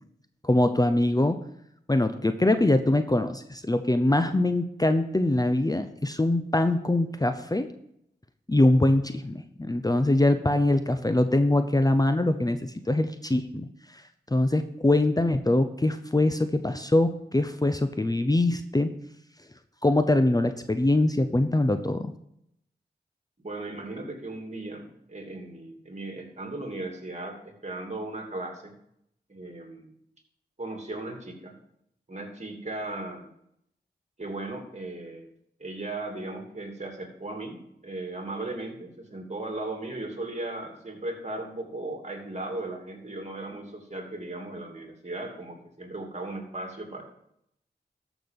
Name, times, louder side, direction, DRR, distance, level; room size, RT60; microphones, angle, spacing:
voice 1, 0.4-1.4 1.9-7.7 8.5-18.9 19.8-22.1, left 1 dB, 20° left, 9 dB, 0.8 m, -23 dB
voice 2, 23.4-28.8 29.3-29.9 30.6-31.5 32.1-33.3 34.2-35.3 35.6-47.0, right 2 dB, 40° right, 3 dB, 2.8 m, -37 dB
13.0 x 6.2 x 5.3 m, 0.75 s
cardioid pair, 40°, 18 cm